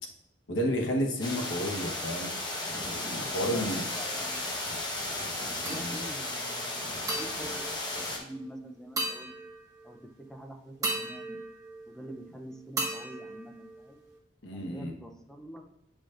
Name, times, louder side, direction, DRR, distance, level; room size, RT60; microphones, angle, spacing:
voice 1, 0.5-2.3 2.9-3.8 5.6-6.0 14.4-14.9, equal, 85° left, 2 dB, 1.2 m, -31 dB
sound 1, 1.2-8.2, left 2 dB, 25° left, 1.2 m, -34 dB
voice 2, 3.0-4.6 5.4-7.6 7.9-9.4 9.8-11.4 11.9-14.0 14.5-15.7, right 1 dB, 5° left, 2 dB, 0.6 m, -46 dB
sound 2, 5.7-6.3 7.1-8.5 9.0-10.0 10.8-12.3 12.8-14.2, right 2 dB, 20° right, 1.6 m, -37 dB
8.7 x 5.0 x 2.5 m, 0.81 s
head